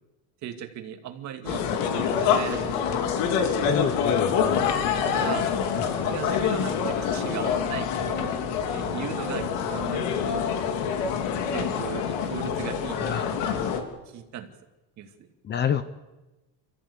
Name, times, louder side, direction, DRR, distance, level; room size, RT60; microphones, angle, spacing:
voice 1, 0.4-2.9 5.0-5.7 6.0-8.3 8.7-10.5 11.5-13.3 14.1-14.5 15.0-15.3, right 10 dB, 40° right, 5 dB, 2.3 m, -37 dB
sound 1, 1.5-13.8, left 7 dB, 90° left, 3.2 m, -26 dB
voice 2, 3.6-4.7 5.8-6.2 12.9-13.3 15.4-15.8, left 8 dB, 25° left, 12 dB, 0.8 m, -29 dB
28.5 x 14.5 x 8.4 m, 1.1 s
cardioid pair, 170°, 41 cm